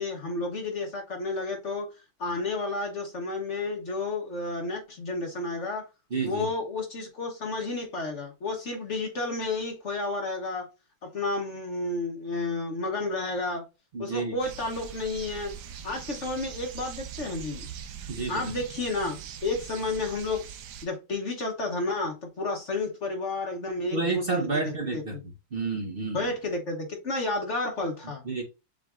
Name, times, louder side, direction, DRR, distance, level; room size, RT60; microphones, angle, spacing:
voice 1, 0.0-1.9 2.2-5.8 6.2-10.7 11.0-13.6 14.0-15.6 15.8-17.7 18.3-20.5 20.8-24.6 24.9-25.2 26.1-28.2, left 2 dB, 50° left, 1.1 m, -31 dB
voice 2, 6.1-6.5 13.9-14.3 18.1-18.5 23.9-25.2 25.5-26.3 28.2-28.4, right 3 dB, 40° right, 0.9 m, -30 dB
sound 1, 14.4-20.9, right 8 dB, 75° right, 1.2 m, -42 dB
7.3 x 3.1 x 2.4 m
omnidirectional pair, 1.8 m